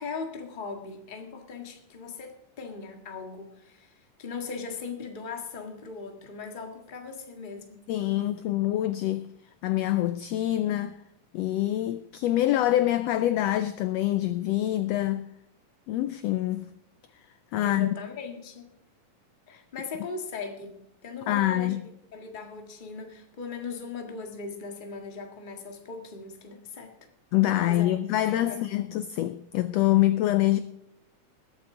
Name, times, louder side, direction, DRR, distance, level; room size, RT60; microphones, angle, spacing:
voice 1, 0.0-7.8 17.6-18.7 19.5-21.8 22.1-26.9 27.7-28.6, left 4 dB, 25° left, 1.1 m, -39 dB
voice 2, 7.9-9.3 9.6-10.9 11.3-15.2 15.9-16.7 17.5-17.9 19.5-19.6 21.3-21.8 27.3-30.6, left 14 dB, 80° left, 1.5 m, -25 dB
20.5 x 8.4 x 3.8 m
omnidirectional pair, 3.5 m